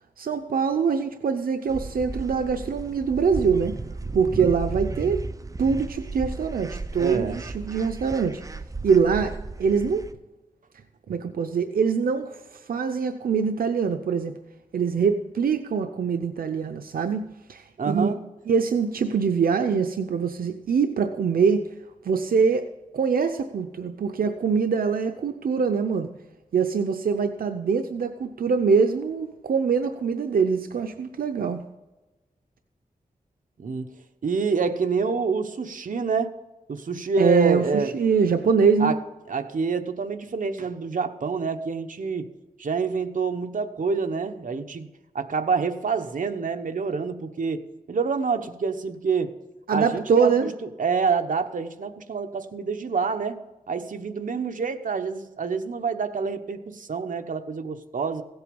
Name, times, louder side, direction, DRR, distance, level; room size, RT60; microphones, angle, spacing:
voice 1, 0.2-3.7 4.1-5.2 5.6-8.4 8.8-9.3 9.6-10.0 11.1-14.3 14.7-18.1 18.5-21.7 22.0-22.7 22.9-26.1 26.5-31.6 37.2-38.9 49.7-50.5, right 5 dB, 85° right, 7 dB, 0.7 m, -23 dB
sound 1, 1.7-10.1, right 3 dB, 25° right, 0.6 m, -35 dB
voice 2, 7.0-7.4 17.8-18.2 33.6-33.9 34.2-36.3 36.7-37.9 38.8-39.0 39.3-42.3 42.6-44.9 45.1-47.6 47.9-49.3 49.7-53.4 53.7-58.2, right 5 dB, 65° right, 7 dB, 1.0 m, -27 dB
16.5 x 8.1 x 5.3 m, 1.1 s
wide cardioid pair, 90°, 15 cm